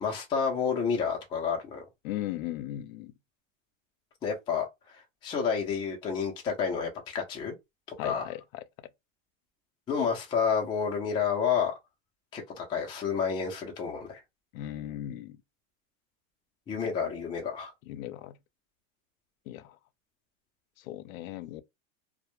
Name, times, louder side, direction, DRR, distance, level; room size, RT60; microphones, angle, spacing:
voice 1, 0.0-1.9 4.2-7.5 7.9-8.2 9.9-11.8 12.3-14.2 16.7-17.7, left 6 dB, 15° left, 0.4 m, -30 dB
voice 2, 2.0-3.1 8.0-8.6 14.5-15.4 17.9-18.4 19.5-19.8 20.8-21.6, left 13 dB, 80° left, 0.5 m, -37 dB
2.1 x 2.0 x 2.9 m
supercardioid pair, 130°, 40 cm